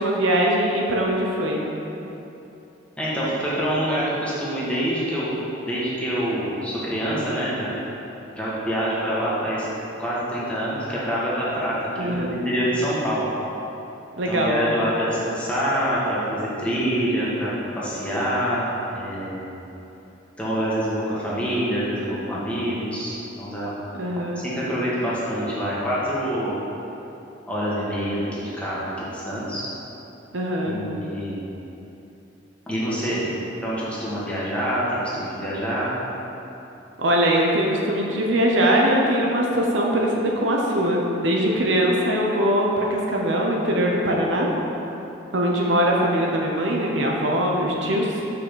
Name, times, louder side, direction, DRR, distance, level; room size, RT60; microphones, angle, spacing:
voice 1, 0.0-1.7 12.0-12.4 14.2-14.6 23.9-24.4 30.3-30.8 37.0-44.5 45.3-48.4, equal, 70° right, -1 dB, 1.0 m, -22 dB
voice 2, 3.0-5.4 5.6-7.7 8.3-9.7 10.0-13.3 14.3-19.4 20.4-23.8 24.1-26.6 27.5-28.8 29.1-29.7 30.6-31.4 32.7-33.3 33.6-36.0, equal, 5° left, -8 dB, 1.8 m, -26 dB
6.0 x 5.8 x 7.0 m, 3.0 s
head